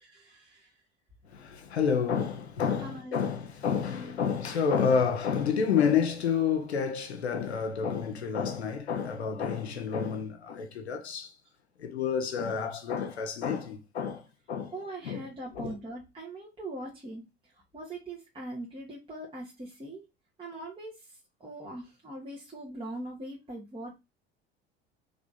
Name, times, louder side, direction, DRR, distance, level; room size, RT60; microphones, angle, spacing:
voice 1, 0.2-0.7 2.8-3.2 14.7-17.2 17.7-20.0 20.4-20.9 21.4-24.0, right 1 dB, 15° right, 1.6 m, -41 dB
voice 2, 1.3-11.3 11.8-14.7 15.0-15.2 15.5-15.7, left 6 dB, 90° left, 0.9 m, -29 dB
3.5 x 3.3 x 4.2 m
hypercardioid pair, 70°, 32 cm